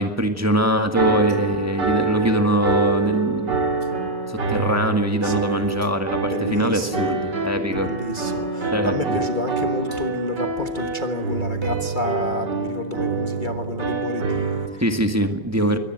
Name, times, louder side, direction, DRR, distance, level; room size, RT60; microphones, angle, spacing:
voice 1, 0.0-3.5 4.3-7.9 8.7-9.1 14.8-15.8, equal, 10° right, 6 dB, 1.6 m, -22 dB
sound 1, 0.9-14.7, right 4 dB, 70° right, 3.6 m, -26 dB
voice 2, 5.2-5.7 6.2-7.1 7.8-14.7 15.5-15.8, left 2 dB, 30° left, 5 dB, 1.4 m, -29 dB
23.0 x 18.5 x 7.8 m, 0.99 s
omnidirectional pair, 1.9 m